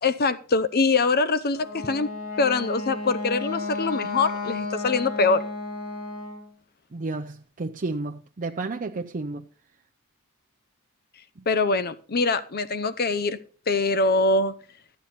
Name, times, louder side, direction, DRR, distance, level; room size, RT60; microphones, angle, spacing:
voice 1, 0.0-2.1 2.4-5.4 11.5-13.4 13.7-14.5, left 3 dB, 45° left, 0.7 m, -23 dB
Wind instrument woodwind instrument, 1.5-6.5, left 3 dB, 70° left, 3.5 m, -33 dB
voice 2, 6.9-9.4, right 3 dB, 35° right, 0.6 m, -31 dB
13.5 x 8.9 x 4.2 m
head